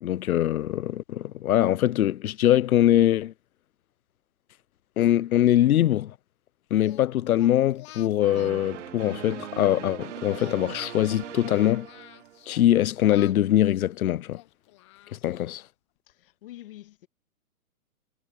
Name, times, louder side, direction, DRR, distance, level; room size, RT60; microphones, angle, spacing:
voice 1, 0.0-3.3 5.0-6.1 6.7-11.9 12.5-14.4 15.1-15.6, left 12 dB, 70° left, 0.6 m, -22 dB
Singing, 6.8-9.8 10.2-12.7 13.1-15.7, left 18 dB, 20° left, 0.9 m, -50 dB
sound 1, 8.2-12.7, right 11 dB, 55° right, 1.5 m, -40 dB
voice 2, 16.1-17.1, left 15 dB, 40° left, 1.8 m, -46 dB
hypercardioid pair, 165°, 44 cm